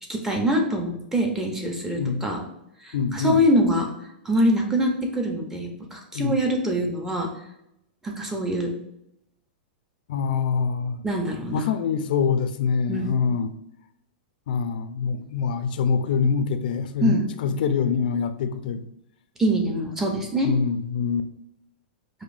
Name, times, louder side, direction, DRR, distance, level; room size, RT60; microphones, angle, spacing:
voice 1, 0.1-2.4 2.8-3.9 4.3-7.3 8.0-8.7 11.0-11.7 12.9-13.1 17.0-17.2 19.4-20.5, equal, 5° right, 1 dB, 0.4 m, -24 dB
voice 2, 2.0-2.3 2.9-3.4 6.1-6.4 10.1-11.0 11.5-13.5 14.5-18.9 20.4-21.3, left 6 dB, 60° left, 9 dB, 0.3 m, -25 dB
4.9 x 2.0 x 2.5 m, 0.79 s
supercardioid pair, 160°, 5 cm